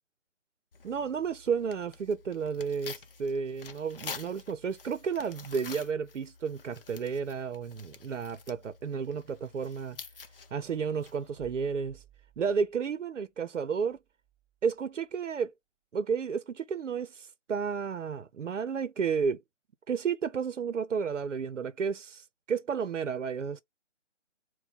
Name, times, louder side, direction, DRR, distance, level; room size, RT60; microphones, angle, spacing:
Tearing, 0.7-11.4, left 5 dB, 50° left, 0.6 m, -48 dB
voice 1, 0.8-10.0 10.5-12.0 12.4-14.0 14.6-15.5 15.9-19.4 19.9-23.6, right 6 dB, 80° right, 0.6 m, -32 dB
sound 1, 10.2-12.9 13.8-14.8, right 9 dB, 10° right, 1.0 m, -60 dB
4.1 x 2.1 x 4.2 m
figure-of-eight pair, 155°, 36 cm